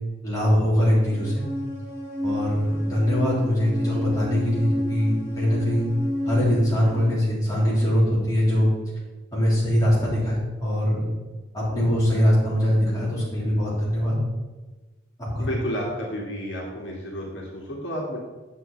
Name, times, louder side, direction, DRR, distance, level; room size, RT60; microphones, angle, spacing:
voice 1, 0.2-1.4 2.2-5.9 6.2-8.7 9.3-11.1 11.5-14.2 15.2-15.5, equal, 20° left, -7 dB, 3.5 m, -22 dB
sound 1, 1.1-7.0, left 1 dB, 15° right, 1.8 m, -31 dB
voice 2, 15.4-18.2, equal, 70° left, -2 dB, 2.0 m, -31 dB
9.1 x 7.2 x 4.6 m, 1.2 s
head